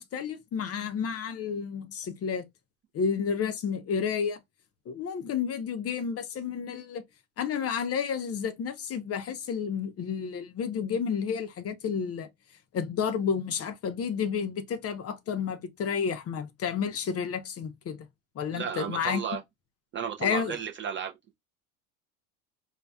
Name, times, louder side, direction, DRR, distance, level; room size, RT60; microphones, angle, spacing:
voice 1, 0.0-2.4 2.9-4.4 4.9-7.0 7.4-12.3 12.7-18.1 18.4-19.2 20.2-20.6, left 6 dB, 30° left, 0.6 m, -31 dB
voice 2, 18.5-19.4 19.9-21.1, right 7 dB, 25° right, 0.4 m, -33 dB
4.1 x 2.3 x 2.3 m
hypercardioid pair, 90°, 47 cm